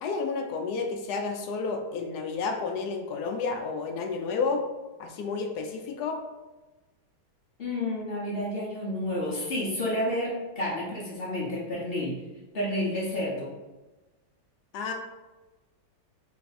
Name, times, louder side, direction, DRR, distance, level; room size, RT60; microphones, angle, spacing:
voice 1, 0.0-4.6 5.0-6.2 14.7-14.9, left 4 dB, 70° left, 3 dB, 1.0 m, -31 dB
voice 2, 7.6-12.2 12.5-13.5, left 1 dB, 45° left, -5 dB, 0.8 m, -30 dB
3.3 x 3.3 x 4.0 m, 1.2 s
omnidirectional pair, 2.1 m